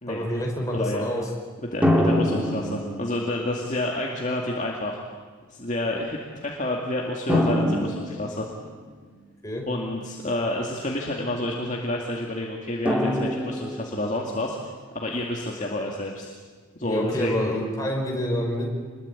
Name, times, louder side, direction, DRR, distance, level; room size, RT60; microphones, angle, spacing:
voice 1, 0.1-1.3 9.4-9.6 16.8-18.7, equal, 15° left, -1 dB, 5.2 m, -27 dB
voice 2, 0.7-1.1 1.6-5.0 5.5-8.5 9.7-14.6 14.9-16.3 16.8-17.5, left 1 dB, 35° left, -1 dB, 2.3 m, -29 dB
sound 1, 1.8-3.6 4.5-4.6 7.3-9.0 12.9-14.2, left 1 dB, 5° right, 2.3 m, -25 dB
27.0 x 21.5 x 8.7 m, 1.5 s
head